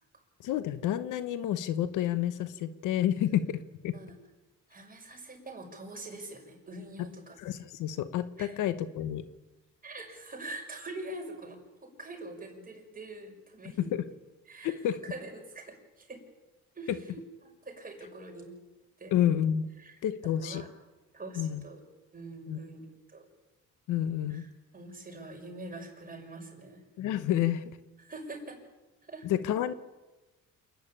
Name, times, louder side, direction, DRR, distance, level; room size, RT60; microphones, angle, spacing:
voice 1, 0.4-3.6 3.8-4.0 7.4-9.2 13.8-13.9 14.6-15.0 19.1-19.7 20.0-20.6 21.4-21.6 22.5-22.6 23.9-24.4 27.0-27.6 29.2-29.7, left 11 dB, 90° left, 13 dB, 1.1 m, -29 dB
voice 2, 4.7-7.4 8.4-8.6 9.8-13.9 14.5-16.2 16.7-18.5 19.0-19.1 19.8-20.0 20.4-20.7 21.1-21.8 22.1-23.3 24.3-26.9 28.0-28.6 29.1-29.3, right 2 dB, 30° right, 2 dB, 6.2 m, -44 dB
28.0 x 10.5 x 8.9 m, 1.1 s
cardioid pair, 90°, 30 cm